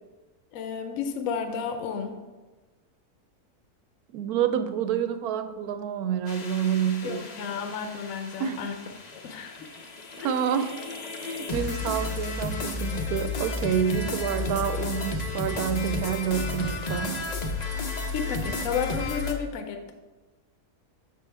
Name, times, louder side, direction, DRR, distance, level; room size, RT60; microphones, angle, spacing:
voice 1, 0.5-2.2 7.0-8.7 9.1-9.7 10.2-10.3 18.1-19.9, left 6 dB, 65° left, 6 dB, 1.0 m, -32 dB
voice 2, 4.1-7.3 8.4-8.6 10.2-10.8 11.2-17.3, right 8 dB, 80° right, 9 dB, 1.0 m, -28 dB
sound 1, 6.3-19.3, left 3 dB, 50° left, 0.5 m, -33 dB
6.9 x 6.3 x 3.4 m, 1.2 s
omnidirectional pair, 1.6 m